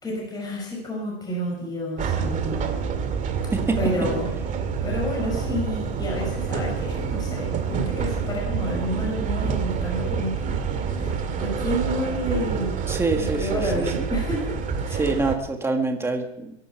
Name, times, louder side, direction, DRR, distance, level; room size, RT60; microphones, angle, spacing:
voice 1, 0.0-2.7 3.8-4.3 4.8-12.8 13.1-15.2, left 1 dB, 10° left, -2 dB, 5.7 m, -30 dB
sound 1, 2.0-15.4, right 6 dB, 20° right, 2.2 m, -27 dB
voice 2, 12.9-14.1 14.9-16.5, right 3 dB, 5° right, 4 dB, 1.8 m, -26 dB
23.0 x 11.5 x 4.7 m, 0.84 s
supercardioid pair, 150°, 34 cm